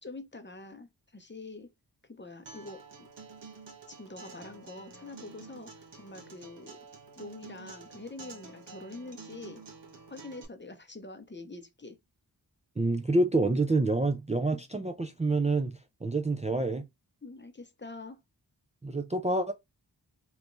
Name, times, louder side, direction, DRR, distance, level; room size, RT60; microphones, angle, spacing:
voice 1, 0.0-1.7 2.0-3.1 3.9-6.8 7.1-9.6 10.1-12.0 17.2-18.2, left 3 dB, 25° left, 0.7 m, -45 dB
Acoustic guitar, 2.5-10.4, right 4 dB, 85° right, 1.0 m, -49 dB
voice 2, 12.8-16.9 18.8-19.5, right 2 dB, 15° right, 0.4 m, -27 dB
3.3 x 3.0 x 2.6 m
cardioid pair, 40°, 42 cm